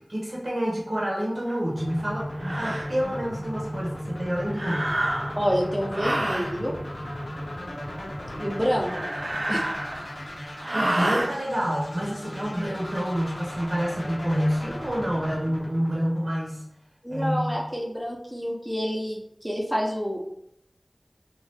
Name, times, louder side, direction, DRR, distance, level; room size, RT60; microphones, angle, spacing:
voice 1, 0.1-5.1 10.4-16.6 17.1-17.6, equal, 65° right, -3 dB, 1.0 m, -28 dB
sound 1, 1.5-1.6 2.4-2.9 4.5-5.5 5.9-6.5 8.7-10.2 10.6-11.3, right 1 dB, 50° right, 0.4 m, -28 dB
sound 2, 1.8-16.7, equal, 75° left, 0.8 m, -36 dB
voice 2, 5.4-6.8 8.4-9.1 9.5-9.6 17.0-20.2, equal, 10° right, -2 dB, 0.8 m, -28 dB
2.7 x 2.5 x 3.4 m, 0.73 s
wide cardioid pair, 50°, 0 cm